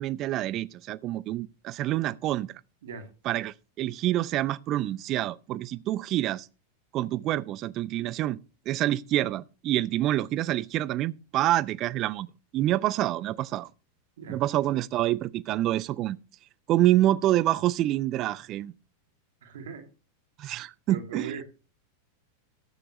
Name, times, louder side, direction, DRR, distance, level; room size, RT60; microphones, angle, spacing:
voice 1, 0.0-2.5 3.2-6.5 6.9-8.4 8.7-12.3 12.5-13.7 14.3-16.2 16.7-18.7 20.4-21.4, right 14 dB, 35° right, 0.5 m, -27 dB
voice 2, 19.4-19.8 20.9-21.4, right 5 dB, 60° right, 2.6 m, -39 dB
13.5 x 12.0 x 3.0 m
figure-of-eight pair, 90°, 0 cm